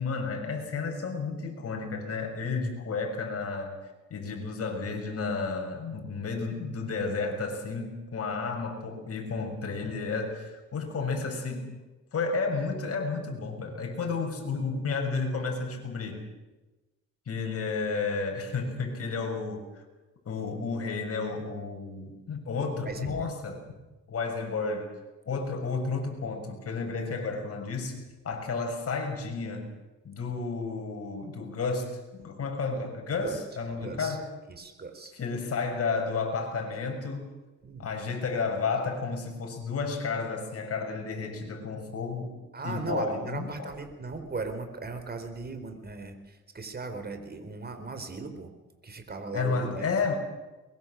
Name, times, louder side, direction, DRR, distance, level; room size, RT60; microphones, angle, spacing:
voice 1, 0.0-11.7 12.1-16.2 17.3-19.8 20.2-23.6 24.1-24.9 25.2-29.7 30.0-34.3 35.1-37.3 37.8-42.3 42.6-43.7 49.3-50.1, left 4 dB, 50° left, 3 dB, 6.8 m, -32 dB
voice 2, 22.9-23.3 33.2-33.4 33.8-34.2 34.5-35.1 37.6-37.9 42.5-48.5 48.8-49.9, right 3 dB, 30° right, 7 dB, 4.6 m, -37 dB
22.5 x 22.5 x 7.7 m, 1.1 s
cardioid pair, 90°, 30 cm